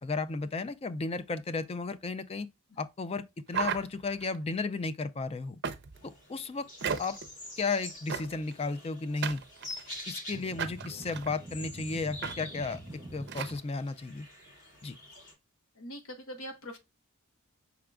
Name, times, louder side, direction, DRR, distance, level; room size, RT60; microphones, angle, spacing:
voice 1, 0.0-2.5 2.8-5.6 6.0-6.7 7.0-7.2 7.6-9.4 10.1-12.8 13.1-14.3 14.8-14.9, left 3 dB, 25° left, 0.4 m, -34 dB
sound 1, 3.5-4.4 5.6-6.1 6.8-7.3 8.1-8.5 9.2-10.0 10.6-11.3 12.2-12.4 12.6-12.8 13.3-13.6, right 7 dB, 50° right, 0.5 m, -35 dB
sound 2, 5.9-15.3, left 1 dB, 55° left, 2.4 m, -47 dB
sound 3, 10.3-13.6, equal, 10° right, 0.8 m, -45 dB
voice 2, 15.7-16.8, equal, 75° left, 1.0 m, -43 dB
5.7 x 3.7 x 2.3 m
head